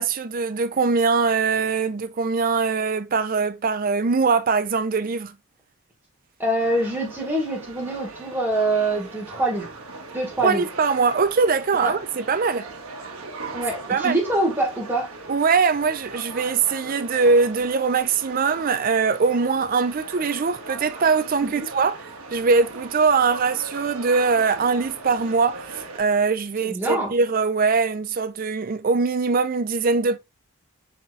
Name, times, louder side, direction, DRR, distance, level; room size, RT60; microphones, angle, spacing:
voice 1, 0.0-5.3 10.4-12.6 13.9-14.2 15.3-22.0 22.3-30.2, right 4 dB, 40° right, 0.4 m, -22 dB
voice 2, 6.4-9.7 10.1-10.7 11.8-11.9 13.5-15.1 21.4-21.7 26.6-27.1, right 1 dB, 10° right, 1.8 m, -25 dB
sound 1, 6.6-26.0, right 3 dB, 85° right, 1.2 m, -39 dB
4.4 x 4.2 x 2.4 m
head